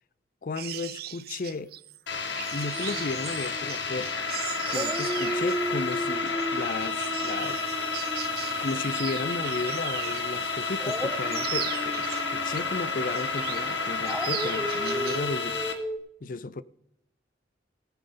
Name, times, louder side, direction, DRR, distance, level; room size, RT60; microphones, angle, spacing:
voice 1, 0.4-1.7 2.5-4.3 4.7-7.6 8.6-15.6 16.2-16.6, left 3 dB, 50° left, 0.5 m, -34 dB
sound 1, 0.5-10.4 10.7-12.6 13.0-13.7 14.0-15.3 15.6-15.8, right 13 dB, 55° right, 0.5 m, -39 dB
sound 2, 2.1-15.7, left 4 dB, 75° left, 1.4 m, -31 dB
Dog, 2.7-4.3 4.7-9.7 10.8-16.0, equal, 5° left, 0.7 m, -36 dB
18.0 x 8.9 x 3.9 m
head